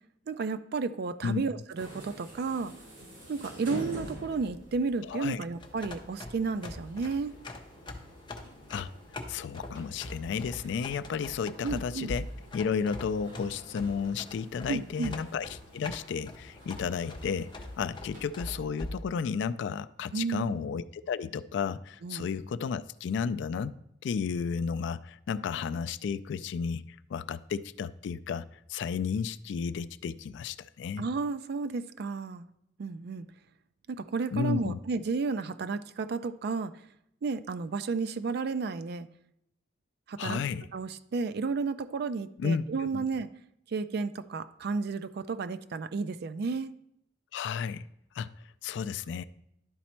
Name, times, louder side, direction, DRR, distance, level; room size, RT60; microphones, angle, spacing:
voice 1, 0.3-2.7 3.3-7.3 11.6-12.1 14.7-15.2 20.1-20.5 22.0-22.3 31.0-32.5 32.8-33.3 33.9-36.7 37.2-39.1 40.1-40.4 40.7-43.3 43.7-46.7, right 4 dB, 55° right, 12 dB, 0.4 m, -32 dB
sound 1, 1.7-18.2, equal, 80° right, 2.9 m, -48 dB
voice 2, 5.1-5.4 8.7-8.9 9.3-12.3 12.5-17.5 17.8-23.7 24.0-26.8 27.1-31.1 34.3-34.8 40.2-40.7 42.4-42.6 42.9-43.0 47.3-47.8 48.2-48.3 48.6-49.2, left 6 dB, 65° left, 12 dB, 0.3 m, -32 dB
sound 2, 5.6-19.0, left 2 dB, 25° left, 0.7 m, -43 dB
11.0 x 4.2 x 4.4 m, 0.77 s
head